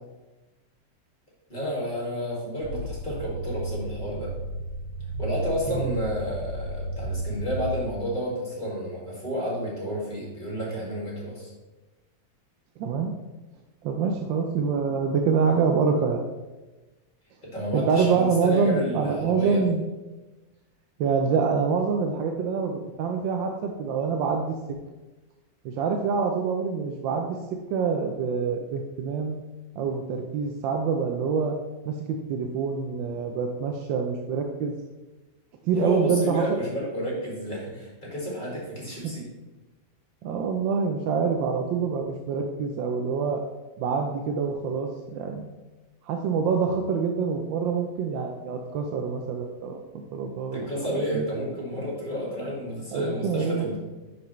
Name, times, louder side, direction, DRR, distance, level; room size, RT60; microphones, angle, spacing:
voice 1, 1.5-4.3 5.2-11.5 17.4-19.7 35.7-39.3 50.5-53.8, equal, 25° left, -4 dB, 2.1 m, -31 dB
sound 1, 2.6-7.8, right 2 dB, 40° right, 2.8 m, -33 dB
voice 2, 12.8-13.1 13.8-16.2 17.7-19.9 21.0-24.8 25.6-29.3 29.8-31.5 31.9-34.7 35.6-36.6 39.0-39.1 40.2-43.4 43.8-45.5 46.0-51.2 52.9-53.8, right 5 dB, 85° right, 3 dB, 1.3 m, -26 dB
10.5 x 4.7 x 3.1 m, 1.2 s
omnidirectional pair, 2.0 m